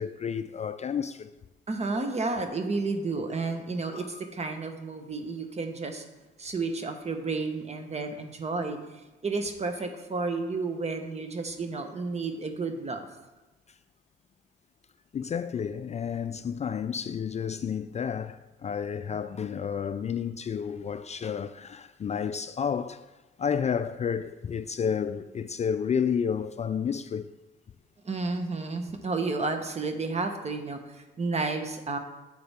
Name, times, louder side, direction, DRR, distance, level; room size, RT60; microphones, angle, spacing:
voice 1, 0.0-1.3 3.9-4.1 15.1-23.0 23.4-27.3, left 7 dB, 35° left, 0.4 m, -31 dB
voice 2, 1.7-6.0 6.4-13.0 28.0-32.0, right 3 dB, 35° right, 1.2 m, -31 dB
9.7 x 6.7 x 3.6 m
cardioid pair, 90°, 20 cm